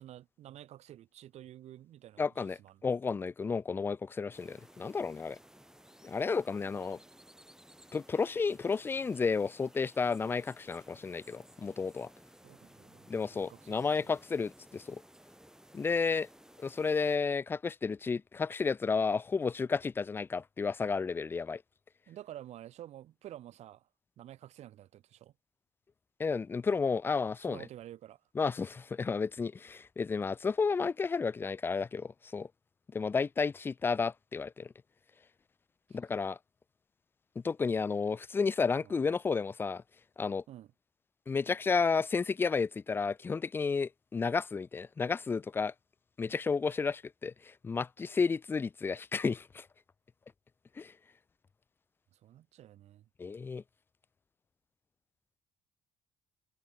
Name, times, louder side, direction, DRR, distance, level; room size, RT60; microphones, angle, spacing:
voice 1, 0.0-2.8 12.4-14.1 22.1-23.9 24.2-25.3 27.4-28.2 35.9-36.0 38.8-39.0 40.5-40.7 52.1-53.1, right 12 dB, 50° right, 1.6 m, -50 dB
voice 2, 2.2-5.4 6.0-7.0 7.9-12.1 13.1-15.0 15.7-16.3 16.6-21.6 26.2-27.6 28.4-32.5 32.9-34.7 35.9-36.4 37.4-39.8 40.2-40.4 41.3-45.7 46.2-49.7 50.8-50.9 53.2-53.6, left 5 dB, 15° left, 0.3 m, -32 dB
sound 1, 4.3-17.2, right 1 dB, 5° right, 8.0 m, -58 dB
figure-of-eight pair, 50°, 15 cm